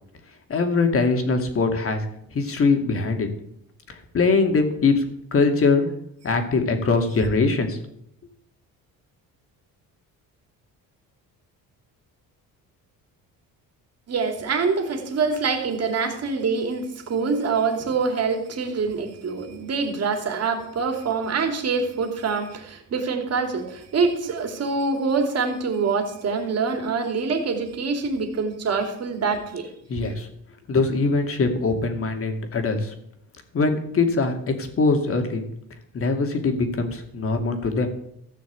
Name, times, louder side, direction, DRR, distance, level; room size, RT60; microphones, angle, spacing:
voice 1, 0.5-2.0 2.3-3.3 3.9-5.0 5.3-5.9 6.2-7.8 29.9-30.3 30.7-32.9 33.5-35.4 35.9-37.9, left 3 dB, 40° left, 5 dB, 2.4 m, -22 dB
voice 2, 14.1-29.7, right 4 dB, 45° right, 4 dB, 2.9 m, -25 dB
14.5 x 6.1 x 8.3 m, 0.74 s
cardioid pair, 125°, 35 cm